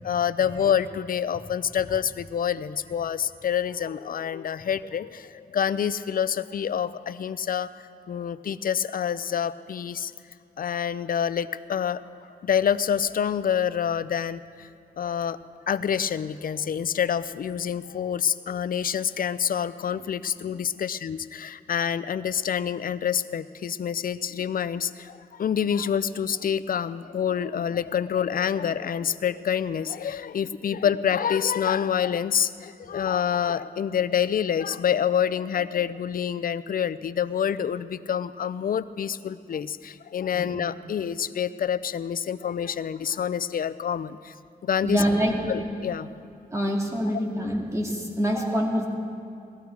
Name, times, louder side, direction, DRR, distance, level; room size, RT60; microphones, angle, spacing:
voice 1, 0.0-7.7 8.1-10.1 10.6-12.0 12.4-14.7 15.0-15.4 15.7-44.3 44.6-45.0 45.5-46.1, left 8 dB, 65° left, 15 dB, 0.5 m, -27 dB
voice 2, 44.8-45.4 46.5-48.9, equal, 20° right, -1 dB, 2.3 m, -26 dB
18.5 x 13.5 x 4.7 m, 2.5 s
wide cardioid pair, 115°, 16 cm